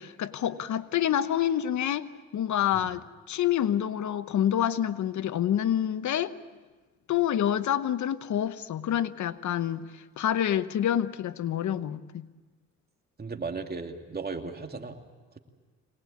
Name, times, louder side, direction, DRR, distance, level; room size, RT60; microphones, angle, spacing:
voice 1, 0.0-6.3 7.1-12.3, left 10 dB, 75° left, 13 dB, 1.0 m, -27 dB
voice 2, 13.2-15.0, right 4 dB, 30° right, 4 dB, 2.6 m, -36 dB
24.0 x 19.5 x 8.5 m, 1.3 s
cardioid pair, 75°, 30 cm